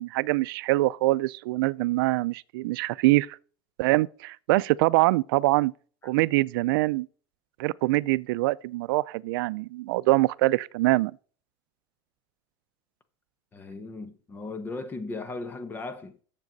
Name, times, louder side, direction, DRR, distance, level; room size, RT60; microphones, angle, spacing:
voice 1, 0.0-3.4 3.8-5.7 6.0-7.1 7.6-11.1, right 19 dB, 90° right, 0.4 m, -24 dB
voice 2, 13.5-16.2, left 3 dB, 15° left, 1.0 m, -37 dB
12.0 x 7.4 x 4.0 m
cardioid pair, 160°, 11 cm